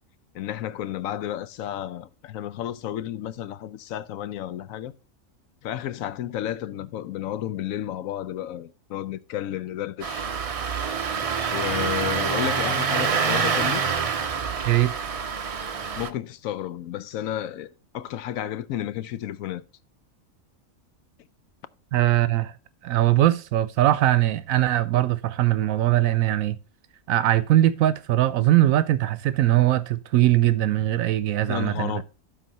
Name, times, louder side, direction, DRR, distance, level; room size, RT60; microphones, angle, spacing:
voice 1, 0.3-4.9 5.6-10.3 11.5-13.8 16.0-19.6 31.5-32.0, left 12 dB, 85° left, 1.0 m, -32 dB
Engine starting, 10.0-16.1, right 6 dB, 45° right, 0.4 m, -26 dB
voice 2, 21.9-22.5 22.8-26.6 27.1-31.9, right 14 dB, 80° right, 1.0 m, -21 dB
12.0 x 4.1 x 4.1 m
omnidirectional pair, 1.4 m